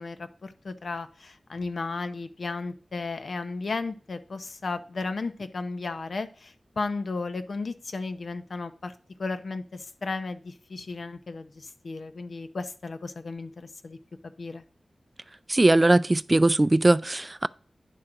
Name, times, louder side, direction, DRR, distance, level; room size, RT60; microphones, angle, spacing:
voice 1, 0.0-8.9 9.2-14.0 14.2-14.6, left 3 dB, 70° left, 0.7 m, -34 dB
voice 2, 15.5-17.5, right 2 dB, 30° right, 0.3 m, -20 dB
10.0 x 3.8 x 6.0 m
wide cardioid pair, 75°, 0 cm